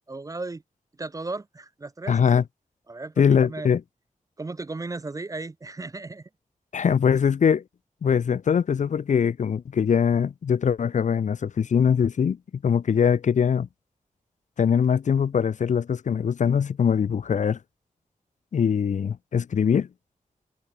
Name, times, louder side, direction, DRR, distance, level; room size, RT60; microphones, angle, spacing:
voice 1, 0.1-0.6 1.0-2.2 2.9-3.7 4.4-6.3, right 3 dB, 25° right, 0.5 m, -35 dB
voice 2, 2.1-2.4 3.2-3.8 6.7-7.6 8.0-13.7 14.6-17.6 18.5-19.9, left 7 dB, 60° left, 0.4 m, -22 dB
wide cardioid pair, 125°, 14 cm